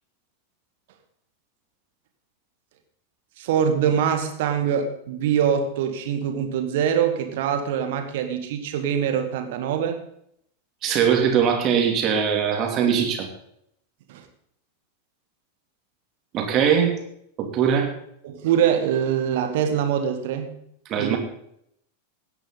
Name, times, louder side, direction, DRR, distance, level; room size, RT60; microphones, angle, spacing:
voice 1, 3.4-10.0 14.1-14.2 18.2-20.5 21.0-21.2, right 8 dB, 55° right, 7 dB, 1.9 m, -23 dB
voice 2, 10.8-13.3 16.3-16.9 17.4-17.9 20.9-21.2, right 7 dB, 35° right, 3 dB, 3.0 m, -21 dB
17.0 x 10.0 x 4.1 m, 0.71 s
figure-of-eight pair, 90°, 0 cm